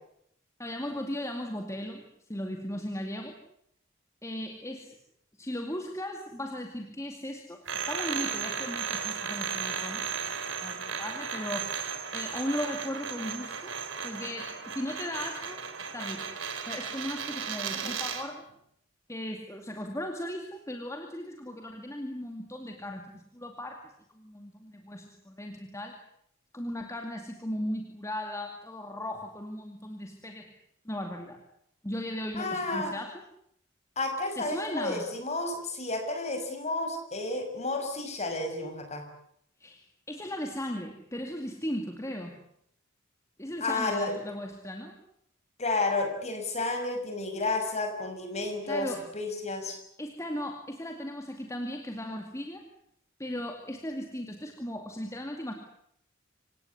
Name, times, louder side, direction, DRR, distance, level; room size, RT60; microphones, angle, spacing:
voice 1, 0.6-2.0 2.3-3.4 4.2-5.0 5.4-7.6 7.9-11.7 12.1-13.7 14.0-15.6 15.9-16.3 16.7-18.4 19.1-26.0 26.5-30.5 30.8-31.4 31.8-33.2 34.4-35.0 39.6-42.4 43.4-45.0 48.6-49.0 50.0-52.6 53.2-55.5, left 1 dB, 15° left, 4 dB, 2.4 m, -37 dB
sound 1, 7.6-18.3, right 6 dB, 70° right, 3.8 m, -35 dB
voice 2, 32.4-32.9 34.0-39.0 43.6-44.1 45.6-49.8, left 2 dB, 35° left, 5 dB, 6.1 m, -31 dB
27.0 x 18.0 x 9.9 m, 0.72 s
head